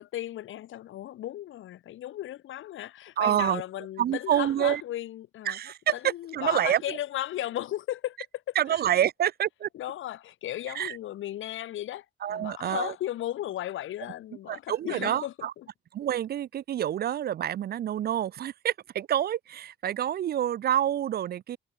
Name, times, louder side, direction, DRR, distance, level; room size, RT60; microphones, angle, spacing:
voice 1, 0.0-5.6 5.9-8.8 9.7-15.7, left 13 dB, 80° left, 3.5 m, -36 dB
voice 2, 3.2-3.6 4.0-4.8 5.5-7.0 8.6-9.7 10.7-11.0 12.2-12.9 14.5-15.5 15.9-21.6, right 11 dB, 50° right, 0.5 m, -27 dB
cardioid pair, 90°, 20 cm